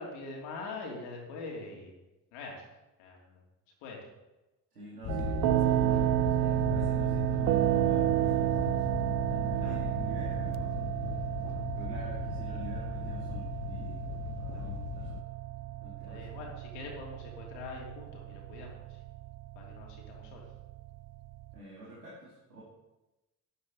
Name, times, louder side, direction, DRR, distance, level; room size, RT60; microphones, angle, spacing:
voice 1, 0.0-2.0 2.3-2.6 3.0-3.4 3.8-4.0 9.6-9.8 14.5-14.7 16.0-19.0 19.6-20.4, left 3 dB, 65° left, 0 dB, 2.8 m, -43 dB
voice 2, 4.7-8.9 9.3-10.9 11.7-14.0 14.4-15.2 15.8-16.2 21.5-22.6, right 1 dB, 90° right, -7 dB, 2.1 m, -48 dB
sound 1, 5.0-15.2, left 17 dB, 40° left, 0.4 m, -38 dB
sound 2, 5.1-21.6, right 15 dB, 50° right, 0.6 m, -31 dB
12.5 x 9.5 x 4.2 m, 1.0 s
figure-of-eight pair, 50°, 46 cm